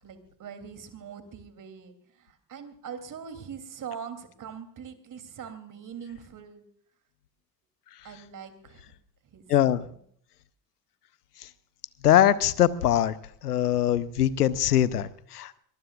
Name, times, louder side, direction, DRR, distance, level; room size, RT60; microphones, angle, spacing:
voice 1, 0.0-6.6 8.0-8.8 9.3-9.9, right 7 dB, 40° right, 9 dB, 3.1 m, -42 dB
voice 2, 9.5-9.8 12.0-13.1 13.4-15.6, left 11 dB, 85° left, 18 dB, 0.8 m, -22 dB
22.5 x 21.5 x 2.4 m, 0.62 s
figure-of-eight pair, 60°, 45 cm